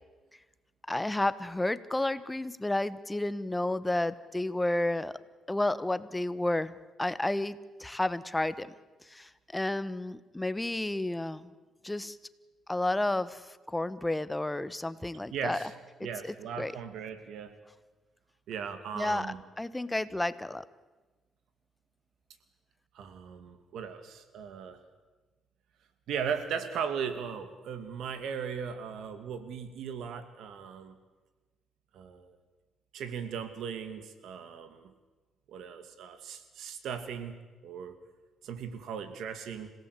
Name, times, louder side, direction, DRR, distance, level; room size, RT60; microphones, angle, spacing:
voice 1, 0.9-5.2 5.5-6.7 7.0-8.7 9.1-11.5 11.8-12.2 12.7-15.7 16.0-16.7 19.0-19.3 19.6-20.6, left 1 dB, 10° left, 15 dB, 1.1 m, -31 dB
voice 2, 15.3-15.7 16.0-17.5 18.5-19.4 22.9-24.8 26.1-31.0 31.9-32.4 32.9-34.9 35.5-37.4 37.6-38.0 38.4-39.7, right 7 dB, 80° right, 10 dB, 2.4 m, -38 dB
27.0 x 17.5 x 8.3 m, 1.2 s
cardioid pair, 90°, 0 cm